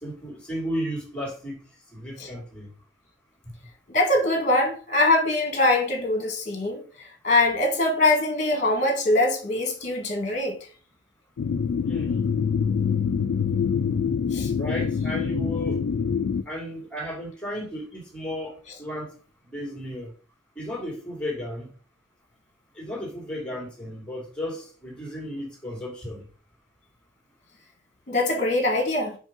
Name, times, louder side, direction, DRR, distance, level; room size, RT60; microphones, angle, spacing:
voice 1, 0.0-1.6 1.9-2.7 11.8-12.2 14.6-15.8 16.5-19.1 19.5-20.1 20.6-21.7 22.8-26.2, equal, 5° left, 2.2 m, -34 dB
voice 2, 3.9-6.8 7.2-10.6 14.3-14.5 28.1-29.1, left 2 dB, 40° left, 1.6 m, -23 dB
sound 1, 11.4-16.4, left 6 dB, 80° left, 0.4 m, -25 dB
5.3 x 4.9 x 3.7 m
head